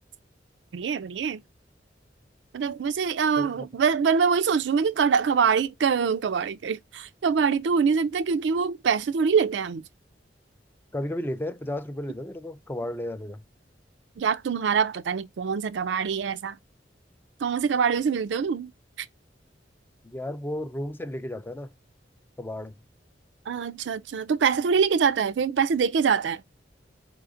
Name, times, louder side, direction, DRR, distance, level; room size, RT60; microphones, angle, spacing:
voice 1, 0.7-1.4 2.5-9.9 14.2-16.6 17.4-18.7 19.0-19.1 23.5-26.4, right 6 dB, 85° right, 0.4 m, -24 dB
voice 2, 10.9-13.4 20.0-21.7 22.4-22.8, left 1 dB, 10° left, 0.3 m, -33 dB
4.8 x 3.8 x 2.5 m
head